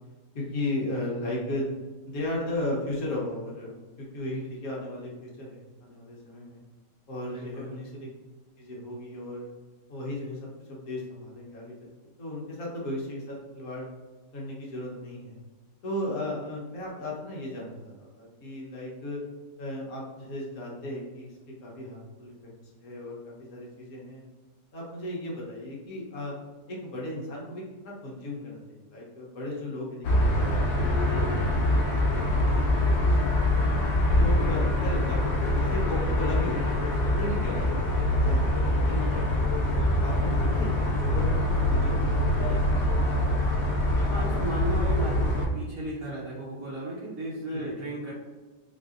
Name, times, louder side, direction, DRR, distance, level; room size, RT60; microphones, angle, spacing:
voice 1, 0.3-1.7 2.1-6.6 7.1-8.1 8.6-9.5 9.9-10.4 10.7-11.9 12.2-13.9 14.3-15.4 15.8-19.2 19.6-21.3 21.6-22.5 22.8-23.2 23.5-24.2 24.7-26.3 26.7-30.7 31.0-33.4 34.2-39.5 40.0-43.2 47.5-47.7, left 1 dB, 60° left, -4 dB, 1.3 m, -36 dB
voice 2, 7.3-7.7 32.4-32.7 40.3-40.8 43.5-43.6 44.0-48.1, right 1 dB, 65° right, -7 dB, 1.1 m, -36 dB
sound 1, 30.0-45.5, left 1 dB, 85° left, 1.3 m, -24 dB
4.1 x 2.7 x 2.4 m, 1.3 s
omnidirectional pair, 1.8 m